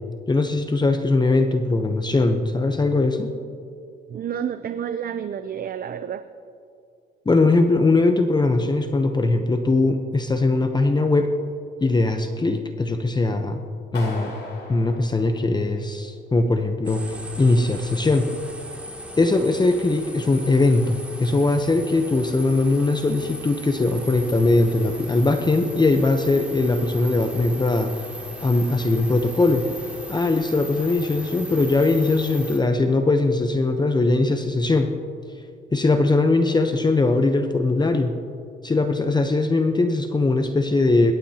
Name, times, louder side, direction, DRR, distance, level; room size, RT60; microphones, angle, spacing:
voice 1, 0.3-3.3 7.3-11.3 11.8-13.6 13.9-14.3 14.7-18.3 19.2-27.9 28.4-29.7 30.1-34.9 35.7-38.1 38.6-41.1, left 2 dB, 20° left, 6 dB, 0.8 m, -20 dB
voice 2, 4.1-6.2, right 8 dB, 50° right, 10 dB, 0.5 m, -29 dB
Clapping, 13.9-16.0, left 3 dB, 60° left, 4.2 m, -37 dB
sound 1, 16.8-32.6, right 1 dB, 5° right, 2.5 m, -38 dB
24.0 x 12.5 x 2.9 m, 2.4 s
cardioid pair, 90°, 20 cm